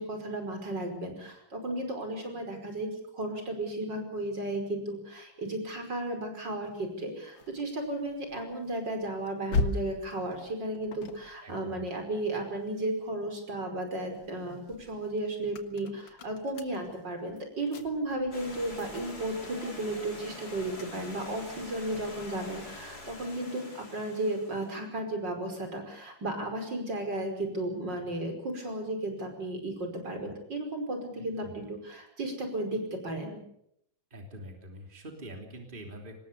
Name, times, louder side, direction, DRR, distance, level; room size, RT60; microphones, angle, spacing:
voice 1, 0.0-2.9 3.1-33.4, right 1 dB, 65° right, 4 dB, 5.9 m, -34 dB
sound 1, 6.6-13.2 13.6-23.4, left 3 dB, 80° left, 2.4 m, -41 dB
voice 2, 11.4-11.8 31.2-31.3 34.1-36.2, right 1 dB, 25° right, 3 dB, 3.3 m, -45 dB
Stream, 18.3-24.8, left 2 dB, 50° left, 4.9 m, -46 dB
25.5 x 20.0 x 6.9 m, 0.74 s
omnidirectional pair, 2.1 m